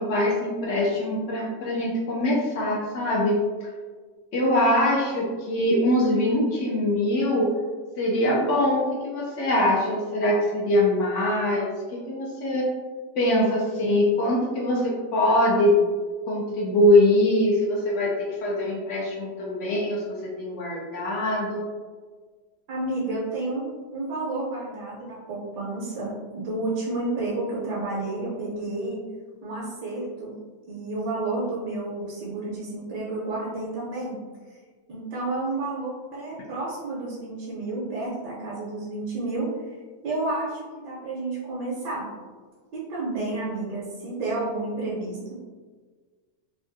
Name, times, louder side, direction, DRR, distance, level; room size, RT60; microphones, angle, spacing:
voice 1, 0.0-3.4 4.3-7.5 8.0-12.7 13.2-15.8 16.3-21.7, left 1 dB, 75° left, -4 dB, 0.6 m, -23 dB
voice 2, 22.7-23.7 23.9-29.0 29.4-30.3 30.7-34.2 34.9-39.5 40.0-42.1 42.7-45.3, right 2 dB, 75° right, -6 dB, 1.3 m, -30 dB
3.4 x 2.3 x 2.6 m, 1.5 s
omnidirectional pair, 1.9 m